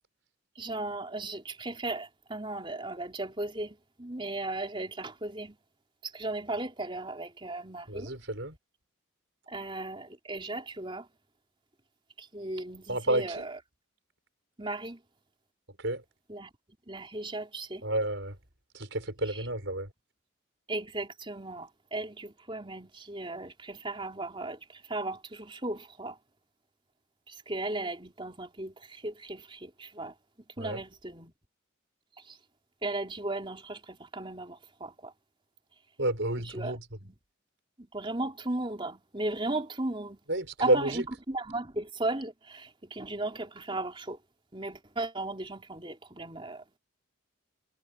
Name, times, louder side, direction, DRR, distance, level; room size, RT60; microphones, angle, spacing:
voice 1, 0.6-5.6 6.0-8.1 9.5-11.1 12.2-13.5 14.6-15.0 16.3-16.5 16.9-17.8 20.7-26.2 27.3-30.1 30.6-31.3 32.3-32.4 32.8-35.1 36.5-36.7 37.0-37.1 37.8-40.2 40.6-44.2 44.5-46.6, right 2 dB, 25° right, 3.7 m, -36 dB
voice 2, 7.9-8.6 12.9-13.5 15.8-16.0 17.8-18.4 18.7-19.9 30.6-30.8 36.0-36.9 40.3-41.1, right 1 dB, 60° right, 6.1 m, -30 dB
head